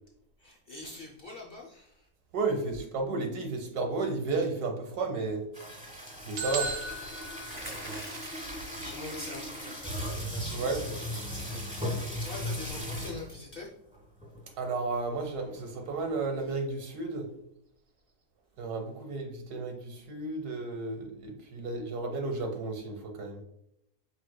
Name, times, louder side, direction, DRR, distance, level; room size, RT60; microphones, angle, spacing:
voice 1, 0.4-2.1 7.6-7.7 7.9-13.7 14.5-14.6, left 2 dB, 55° left, -1 dB, 0.6 m, -45 dB
voice 2, 2.3-5.4 5.9-6.7 7.8-8.0 10.5-10.8 14.6-17.3 18.6-23.4, right 3 dB, 90° right, 3 dB, 1.5 m, -33 dB
sound 1, 5.5-13.4 13.9-14.0 14.2-14.5 14.9-16.2, equal, 5° right, 1.3 m, -38 dB
sound 2, 6.4-8.3, right 3 dB, 55° right, 0.7 m, -36 dB
sound 3, 7.5-8.7 9.5-9.7 10.1-10.2 10.4-10.7 11.2-11.5, right 1 dB, 20° right, 0.9 m, -45 dB
4.9 x 3.9 x 2.2 m, 0.77 s
omnidirectional pair, 1.6 m